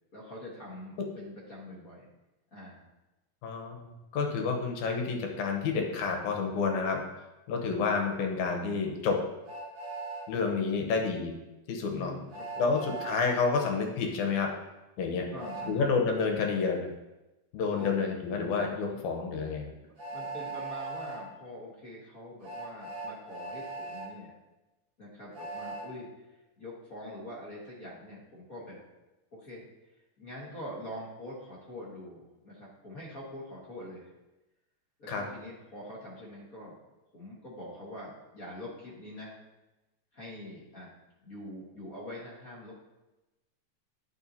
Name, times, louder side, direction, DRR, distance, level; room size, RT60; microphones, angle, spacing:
voice 1, 0.1-2.1 2.5-2.9 11.9-12.8 15.3-15.8 17.7-17.9 18.9-19.1 19.8-24.3 25.0-28.8 29.3-29.6 30.2-34.1 35.0-36.8 37.1-39.4 40.1-40.9 41.2-42.7, left 1 dB, 45° left, -6 dB, 1.2 m, -44 dB
voice 2, 3.4-7.0 7.5-9.2 10.3-11.4 11.7-12.1 12.6-14.5 15.0-15.3 15.7-16.9 17.5-19.7 35.1-35.2, left 5 dB, 85° left, 2 dB, 2.3 m, -29 dB
Train, 9.5-10.3 12.3-13.3 15.4-15.7 17.8-17.9 20.0-21.2 22.4-24.1 25.3-25.9, right 3 dB, 45° right, 2.0 m, -39 dB
11.0 x 4.6 x 2.7 m, 1.0 s
omnidirectional pair, 3.3 m